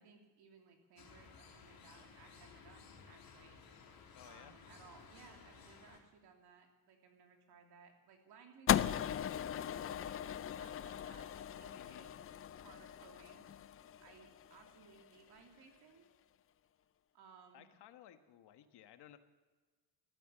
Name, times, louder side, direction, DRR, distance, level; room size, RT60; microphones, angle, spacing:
voice 1, 0.0-3.6 4.2-12.1 12.6-13.4 14.0-16.1 17.1-17.7, right 5 dB, 75° right, 3 dB, 3.0 m, -62 dB
sound 1, 1.0-6.0, left 5 dB, 60° left, 3.1 m, -58 dB
voice 2, 4.1-4.5 11.7-12.1 17.5-19.2, left 11 dB, 80° left, 9 dB, 1.3 m, -58 dB
sound 2, 8.7-15.0, left 10 dB, 35° left, 0.4 m, -38 dB
14.0 x 12.0 x 8.1 m, 1.3 s
cardioid pair, 130°, 40 cm